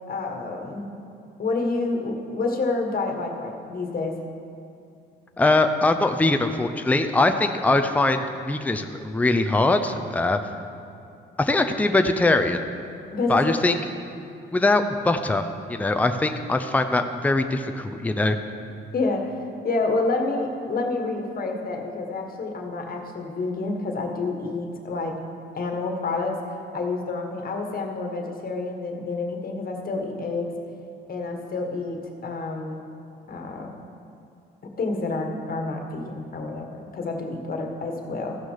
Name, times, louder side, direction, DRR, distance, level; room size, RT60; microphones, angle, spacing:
voice 1, 0.1-0.9 1.4-4.2 13.1-13.7 18.9-19.4 19.6-25.2 25.6-26.3 26.7-30.5 31.1-32.8 33.3-33.7 34.8-38.4, left 3 dB, 45° left, 2 dB, 1.6 m, -28 dB
voice 2, 5.4-10.4 11.4-12.6 13.3-13.8 14.5-18.4, left 2 dB, 5° left, 7 dB, 0.6 m, -22 dB
14.5 x 6.1 x 5.7 m, 2.6 s
cardioid pair, 90°, 20 cm